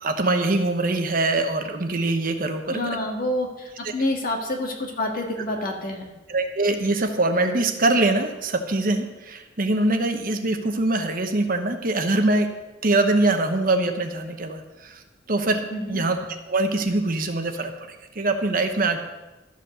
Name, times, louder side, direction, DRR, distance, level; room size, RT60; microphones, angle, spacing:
voice 1, 0.0-3.0 6.3-12.5 12.8-15.0 15.3-16.2 16.5-19.0, right 2 dB, 50° right, 6 dB, 1.0 m, -23 dB
voice 2, 2.7-6.1 15.7-16.0, left 1 dB, 50° left, 1 dB, 1.7 m, -28 dB
12.5 x 5.1 x 6.8 m, 1.1 s
head